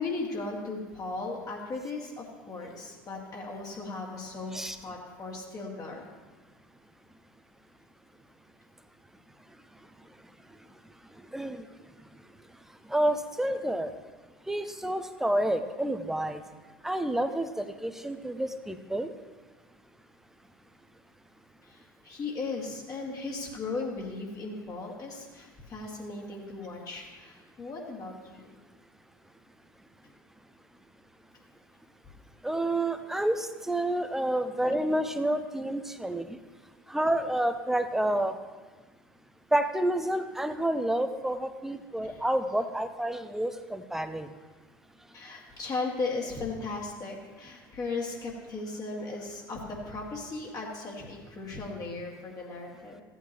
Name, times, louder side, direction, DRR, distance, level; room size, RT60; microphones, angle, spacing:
voice 1, 0.0-6.1 21.6-28.5 34.6-34.8 42.0-42.2 45.1-53.0, left 3 dB, 30° left, -2 dB, 2.0 m, -37 dB
voice 2, 11.3-11.6 12.9-13.9 14.5-16.4 16.8-19.1 32.4-36.4 36.9-38.4 39.5-44.3, right 1 dB, 5° right, 10 dB, 0.7 m, -29 dB
15.5 x 8.3 x 3.0 m, 1.3 s
figure-of-eight pair, 75°, 11 cm